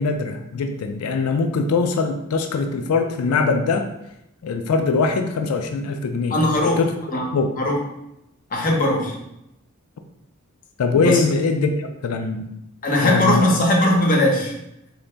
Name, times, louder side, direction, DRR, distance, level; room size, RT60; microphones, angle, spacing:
voice 1, 0.0-3.9 4.4-6.4 6.6-6.9 7.3-7.5 10.8-12.5 13.0-13.5, left 4 dB, 85° left, 6 dB, 0.4 m, -22 dB
voice 2, 6.3-6.8 7.1-7.3 7.6-7.8 8.5-9.1 10.9-11.2 12.8-14.5, left 1 dB, 40° left, 0 dB, 0.8 m, -19 dB
3.9 x 2.6 x 3.3 m, 0.84 s
head